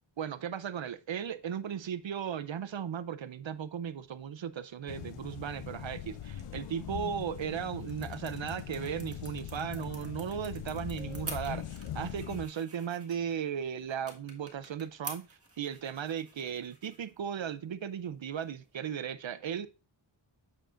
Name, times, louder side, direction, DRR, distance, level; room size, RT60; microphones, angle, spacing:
voice 1, 0.2-19.7, right 8 dB, 65° right, 0.6 m, -36 dB
sound 1, 4.9-12.5, left 10 dB, 85° left, 0.6 m, -41 dB
sound 2, 5.8-9.8, left 6 dB, 55° left, 1.1 m, -52 dB
sound 3, 7.2-18.7, right 2 dB, 30° right, 1.6 m, -50 dB
9.0 x 6.5 x 2.5 m
wide cardioid pair, 95°, 49 cm